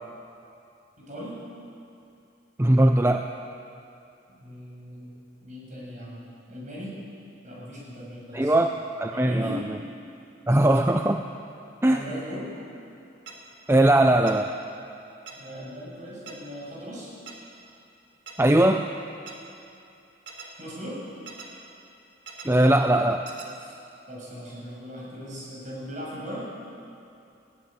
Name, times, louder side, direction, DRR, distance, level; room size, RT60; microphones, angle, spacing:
voice 1, 1.0-1.4 4.4-5.1 5.4-6.2 6.5-6.9 7.4-8.5 9.1-9.6 11.8-12.5 15.3-17.1 20.6-21.0 23.6-23.7 24.1-26.5, equal, 45° right, -4 dB, 7.5 m, -38 dB
voice 2, 2.6-3.3 8.3-8.7 9.0-9.8 10.5-11.2 11.8-12.0 13.7-14.5 18.4-18.9 22.4-23.3, right 1 dB, 15° right, 5 dB, 0.6 m, -20 dB
sound 1, 13.3-13.4 14.3-14.4 15.3-15.4 16.3-16.4 17.3-17.4 18.3-18.4 19.3-19.4 20.3-20.5 21.3-21.5 22.3-22.5 23.3-23.5, right 6 dB, 85° right, 3.6 m, -41 dB
20.5 x 16.5 x 8.9 m, 2.6 s
head